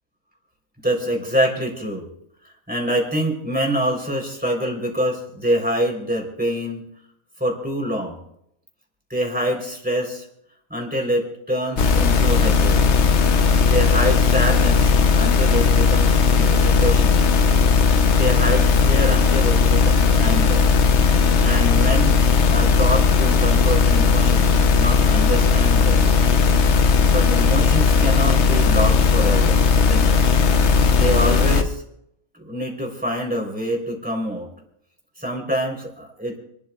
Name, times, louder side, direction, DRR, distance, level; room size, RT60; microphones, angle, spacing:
voice 1, 0.8-2.1 2.7-6.9 7.4-8.2 9.1-10.3 10.7-12.8 13.6-17.2 18.2-20.7 21.4-22.2 22.5-26.1 26.7-26.8 27.1-30.2 31.0-31.8 32.3-34.5 35.2-36.4, equal, 5° right, -1 dB, 3.5 m, -25 dB
sound 1, 11.8-31.6, left 5 dB, 60° left, 1.1 m, -17 dB
29.5 x 12.5 x 2.4 m, 0.75 s
omnidirectional pair, 1.4 m